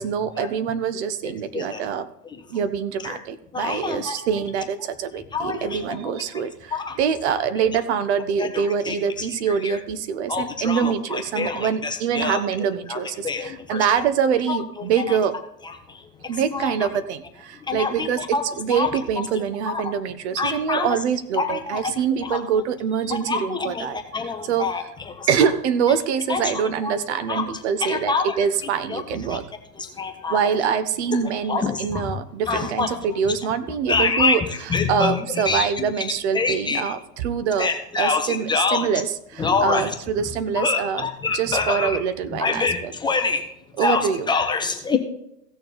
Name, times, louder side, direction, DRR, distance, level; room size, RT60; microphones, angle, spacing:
voice 1, 0.0-2.1 2.5-15.4 16.3-24.0 24.2-24.9 25.3-29.4 30.3-42.9 43.7-44.3, right 7 dB, 45° right, 12 dB, 1.0 m, -25 dB
voice 2, 3.5-4.1 5.3-5.7 6.7-6.9 8.9-9.0 10.3-11.6 12.2-12.4 12.9-13.0 13.2-13.8 16.5-16.7 17.7-17.9 18.3-18.4 18.7-18.9 19.7-19.8 20.4-20.9 21.4-21.8 22.3-22.4 23.3-23.9 24.1-24.8 26.3-26.4 26.8-26.9 27.3-27.4 27.9-28.2 28.9-29.0 30.0-30.4 31.5-32.0 32.5-32.9 33.9-34.3 34.7-35.1 35.5-35.7 36.4-36.8 37.6-38.2 38.5-38.9 39.4-39.8 40.6-41.9 42.4-43.4 43.8-44.0 44.3-45.0, left 4 dB, 10° left, 5 dB, 0.7 m, -24 dB
16.0 x 6.7 x 4.0 m, 0.79 s
figure-of-eight pair, 110°, 47 cm